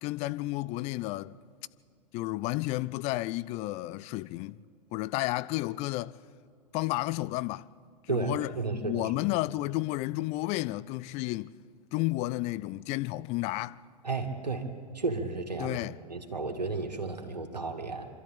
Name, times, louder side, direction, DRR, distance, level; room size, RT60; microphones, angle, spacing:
voice 1, 0.0-1.4 2.1-4.6 4.9-6.2 6.7-7.7 8.1-8.5 8.8-11.5 11.9-13.8 15.6-16.0, left 18 dB, 30° left, 0.5 m, -32 dB
voice 2, 8.1-9.1 14.0-14.7 14.9-15.8 16.1-18.1, right 3 dB, 80° right, 2.3 m, -33 dB
26.5 x 13.0 x 8.7 m
figure-of-eight pair, 95°, 21 cm